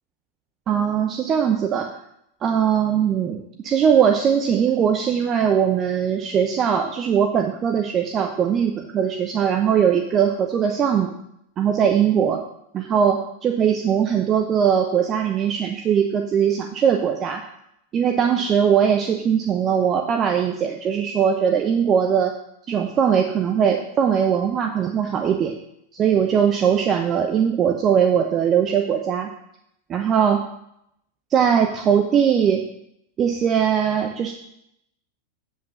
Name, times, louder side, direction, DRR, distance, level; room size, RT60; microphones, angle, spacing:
voice 1, 0.7-1.9 2.4-11.1 11.6-12.4 12.7-17.4 17.9-22.3 22.7-25.6 25.9-29.3 29.9-30.4 31.3-32.7 33.2-34.3, right 8 dB, 30° right, 5 dB, 0.7 m, -20 dB
8.2 x 7.5 x 5.6 m, 0.77 s
figure-of-eight pair, 90°, 0 cm